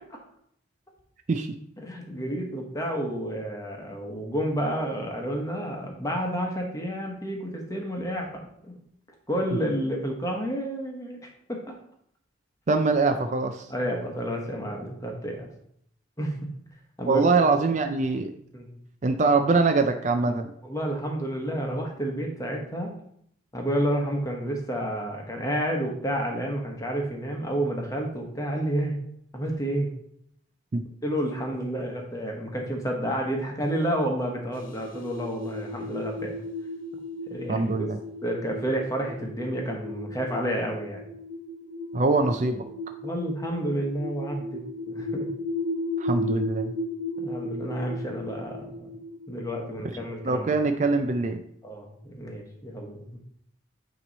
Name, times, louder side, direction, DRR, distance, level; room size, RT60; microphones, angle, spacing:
voice 1, 1.8-8.3 8.6-8.7 9.3-11.2 11.5-11.7 13.7-15.5 16.2-16.3 17.0-17.2 18.5-18.7 20.6-22.9 23.5-28.9 29.3-29.9 31.0-36.4 37.3-37.9 38.2-41.0 43.0-44.6 44.9-45.3 47.2-48.9 49.3-50.5 51.6-53.2, right 1 dB, 15° left, 1 dB, 1.1 m, -30 dB
voice 2, 12.7-13.6 17.1-18.3 19.0-20.5 30.7-30.8 37.5-38.0 41.9-42.6 46.0-46.7 50.2-51.4, right 3 dB, 40° right, 6 dB, 0.4 m, -23 dB
sound 1, 34.5-50.8, left 1 dB, 45° left, 0.8 m, -35 dB
9.1 x 3.1 x 4.0 m, 0.69 s
head